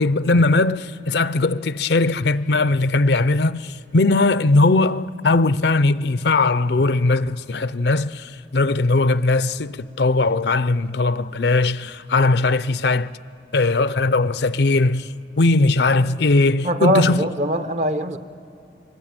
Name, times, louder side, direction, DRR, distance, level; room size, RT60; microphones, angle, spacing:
voice 1, 0.0-13.1 13.5-17.2, left 3 dB, 70° left, 0.6 m, -19 dB
voice 2, 16.6-18.2, right 1 dB, 40° right, 0.8 m, -21 dB
24.5 x 20.5 x 8.9 m
head